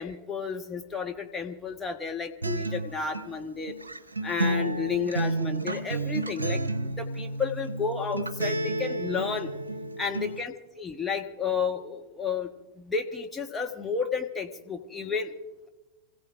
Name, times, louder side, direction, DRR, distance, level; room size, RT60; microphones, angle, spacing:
voice 1, 0.0-3.7 4.2-9.5 10.0-12.5 12.8-15.4, left 5 dB, 15° left, 3 dB, 1.3 m, -32 dB
Acoustic guitar, 2.4-10.4, right 2 dB, 80° right, 0.7 m, -31 dB
28.5 x 16.0 x 2.6 m, 1.1 s
figure-of-eight pair, 90°, 0 cm